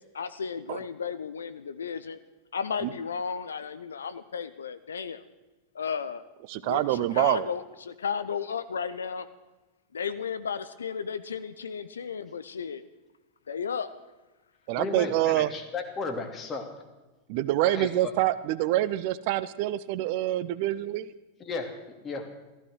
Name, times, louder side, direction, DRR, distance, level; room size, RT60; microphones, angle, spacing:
voice 1, 0.1-2.2 2.5-5.2 5.7-6.2 6.6-9.3 9.9-12.8 13.5-13.9, left 6 dB, 70° left, 13 dB, 0.7 m, -34 dB
voice 2, 6.5-7.5 14.7-15.5 17.3-21.1, right 14 dB, 45° right, 15 dB, 0.6 m, -26 dB
voice 3, 14.7-16.7 17.6-17.9 21.4-21.8 22.0-22.3, left 4 dB, 25° left, 4 dB, 2.6 m, -34 dB
15.0 x 14.5 x 6.3 m, 1.2 s
figure-of-eight pair, 90°, 0 cm